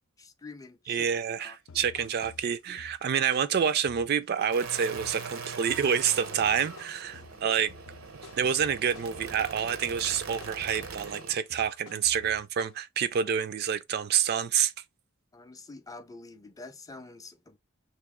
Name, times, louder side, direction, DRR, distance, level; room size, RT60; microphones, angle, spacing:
voice 1, 0.2-1.1 1.4-1.9 7.2-7.5 15.3-17.6, left 3 dB, 15° left, 0.4 m, -47 dB
voice 2, 0.9-7.7 8.4-14.7, right 8 dB, 50° right, 0.3 m, -28 dB
sound 1, 1.1-1.3 1.7-5.3 5.7-6.1 6.4-12.8, left 4 dB, 90° left, 0.5 m, -51 dB
sound 2, 4.5-11.4, right 5 dB, 85° right, 0.7 m, -41 dB
3.1 x 3.0 x 3.6 m
head